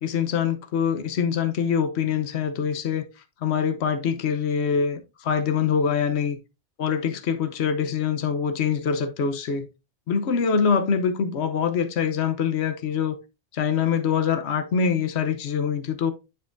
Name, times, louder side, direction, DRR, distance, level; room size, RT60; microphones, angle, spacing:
voice 1, 0.0-3.1 3.4-6.4 6.8-9.7 10.1-13.2 13.5-16.1, left 7 dB, 75° left, 1.1 m, -24 dB
9.6 x 5.2 x 2.6 m
omnidirectional pair, 1.1 m